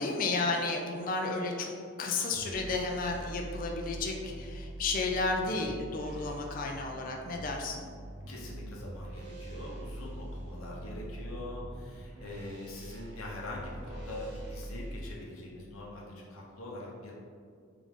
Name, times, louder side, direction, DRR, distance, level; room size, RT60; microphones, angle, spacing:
voice 1, 0.0-1.7 2.0-7.8, left 3 dB, 40° left, 1 dB, 0.4 m, -32 dB
sound 1, 2.3-15.1, right 1 dB, 55° right, 0.8 m, -43 dB
voice 2, 8.3-17.1, left 1 dB, 85° left, -4 dB, 0.8 m, -43 dB
3.8 x 3.5 x 3.6 m, 2.2 s
head